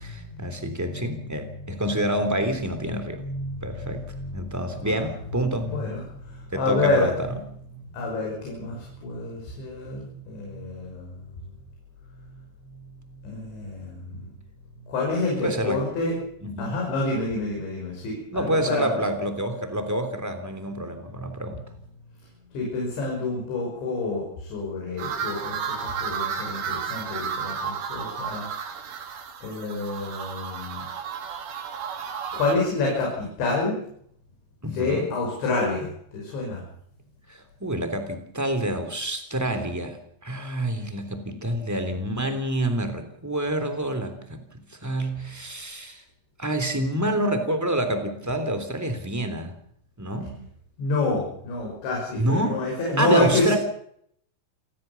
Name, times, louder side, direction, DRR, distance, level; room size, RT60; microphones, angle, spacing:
voice 1, 0.0-3.2 3.6-4.0 4.3-5.7 6.5-7.4 15.4-15.8 16.4-16.8 18.3-21.6 34.6-35.1 37.3-40.0 40.2-44.4 44.7-46.0 46.4-49.5 50.0-50.3 52.2-52.6 53.0-53.6, right 1 dB, 5° right, 7 dB, 2.0 m, -27 dB
voice 2, 3.2-4.3 4.8-5.1 5.6-7.1 7.9-11.2 12.2-12.4 13.2-14.3 14.9-16.1 16.6-18.9 22.5-28.5 29.4-30.8 32.3-33.8 34.7-36.6 50.8-53.5, left 3 dB, 70° left, -1 dB, 8.1 m, -28 dB
sound 1, 25.0-32.6, right 6 dB, 80° right, 5.6 m, -32 dB
28.5 x 15.5 x 7.2 m, 0.69 s
omnidirectional pair, 5.5 m